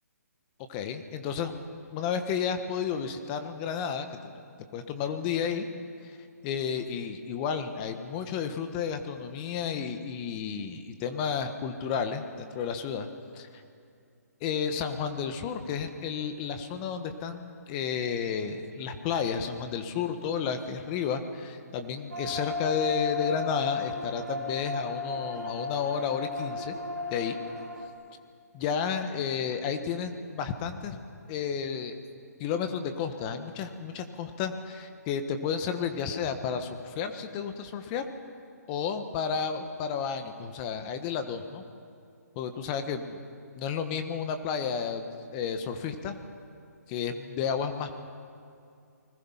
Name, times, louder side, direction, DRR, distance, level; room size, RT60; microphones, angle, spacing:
voice 1, 0.7-1.5 1.9-4.1 4.7-5.7 6.1-6.2 6.4-13.1 13.3-13.5 14.4-26.7 27.1-27.4 28.5-31.0 31.3-31.9 32.4-38.1 38.7-41.6 42.3-43.2 43.6-45.1 45.3-46.2 46.9-47.9, left 7 dB, 25° left, 8 dB, 1.4 m, -32 dB
sound 1, 22.1-27.9, left 4 dB, 80° right, 3.0 m, -34 dB
29.5 x 21.0 x 5.7 m, 2.5 s
hypercardioid pair, 145°, 9 cm